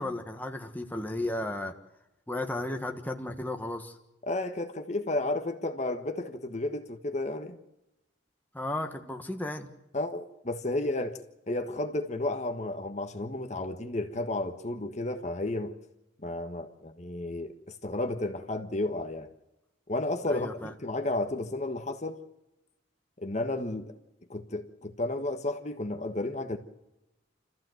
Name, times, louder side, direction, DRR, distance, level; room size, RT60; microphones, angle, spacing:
voice 1, 0.0-1.7 2.3-4.0 8.5-9.7 20.3-20.7, left 1 dB, 10° left, 1.4 m, -34 dB
voice 2, 4.3-7.6 9.9-11.2 11.5-15.8 16.2-19.3 19.9-22.2 23.2-24.0 24.3-26.6, left 2 dB, 35° left, 1.4 m, -32 dB
28.0 x 14.5 x 7.9 m
head